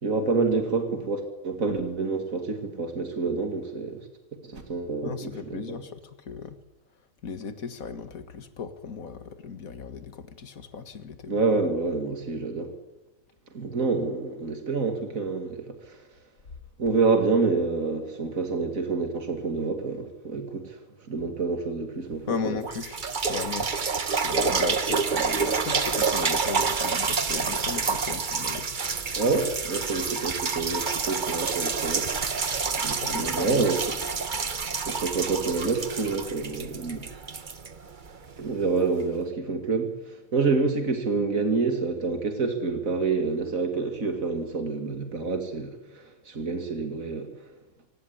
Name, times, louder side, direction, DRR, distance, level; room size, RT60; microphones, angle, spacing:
voice 1, 0.0-4.0 4.5-5.8 11.3-12.7 13.5-16.0 16.8-20.8 21.1-22.6 29.2-32.1 32.3-34.0 34.9-37.1 38.4-47.3, right 4 dB, 75° right, 6 dB, 2.8 m, -27 dB
voice 2, 5.0-6.0 6.3-6.6 7.2-11.4 22.3-23.7 24.1-28.7 32.9-33.7, left 5 dB, 80° left, 10 dB, 2.1 m, -36 dB
sound 1, 22.1-22.2 22.6-38.4 39.0-39.1, right 5 dB, 35° right, 1.2 m, -28 dB
24.5 x 17.5 x 10.0 m, 0.98 s
omnidirectional pair, 1.4 m